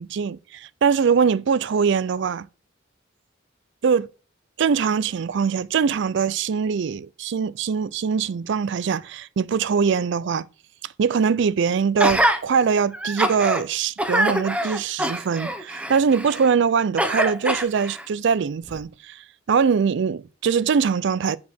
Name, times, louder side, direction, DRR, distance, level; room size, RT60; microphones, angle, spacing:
voice 1, 0.0-2.5 3.8-4.1 4.6-10.5 11.0-19.2 19.5-21.4, right 6 dB, 65° right, 0.4 m, -22 dB
Gasp, 12.0-12.4 12.9-13.6 14.0-16.5 17.0-18.0 18.7-18.8, right 1 dB, 5° right, 0.9 m, -24 dB
8.4 x 4.2 x 6.3 m
head